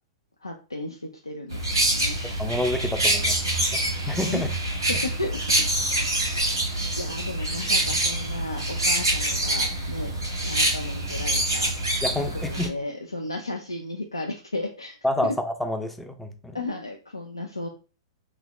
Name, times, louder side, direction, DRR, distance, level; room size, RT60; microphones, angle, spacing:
voice 1, 0.4-2.2 3.2-3.4 4.1-4.4 4.9-5.4 6.4-10.2 10.4-11.7 12.2-15.0 15.2-15.3 16.5-17.7, left 2 dB, 90° left, 2 dB, 0.3 m, -34 dB
sound 1, 1.5-12.7, right 1 dB, 80° right, 1.4 m, -25 dB
voice 2, 2.4-3.4 3.7-3.8 4.1-4.5 12.0-12.7 15.0-16.6, left 1 dB, 5° left, 6 dB, 0.4 m, -28 dB
3.2 x 2.0 x 2.2 m, 0.33 s
figure-of-eight pair, 105°, 2 cm